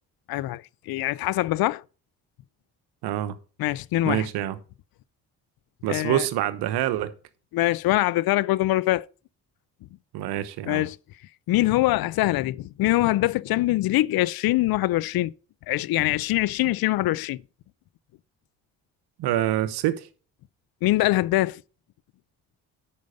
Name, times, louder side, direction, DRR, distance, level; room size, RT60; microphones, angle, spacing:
voice 1, 0.3-1.8 3.6-4.3 5.9-6.2 7.5-9.1 10.7-11.0 11.5-15.3 15.7-17.4 20.8-21.6, left 17 dB, 65° left, 0.5 m, -23 dB
voice 2, 3.0-3.4 4.0-4.6 5.8-7.1 10.1-10.9 19.2-20.1, right 13 dB, 80° right, 0.9 m, -26 dB
9.6 x 5.2 x 5.2 m
supercardioid pair, 55°, 39 cm